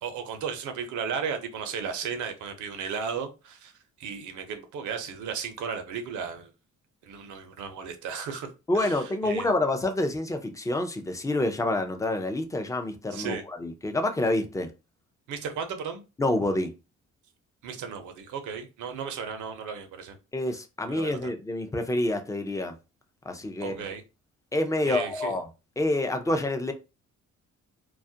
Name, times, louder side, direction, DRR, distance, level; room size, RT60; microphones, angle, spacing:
voice 1, 0.0-3.7 4.0-6.5 7.0-9.5 13.1-13.4 15.3-16.0 17.6-20.2 20.9-21.3 23.6-24.0 24.8-25.3, right 6 dB, 75° right, 0.7 m, -35 dB
voice 2, 8.7-14.7 16.2-16.7 20.3-22.8 23.2-23.8 24.5-25.5 25.8-26.7, left 2 dB, 10° left, 0.4 m, -27 dB
2.3 x 2.0 x 2.7 m
cardioid pair, 90°, 30 cm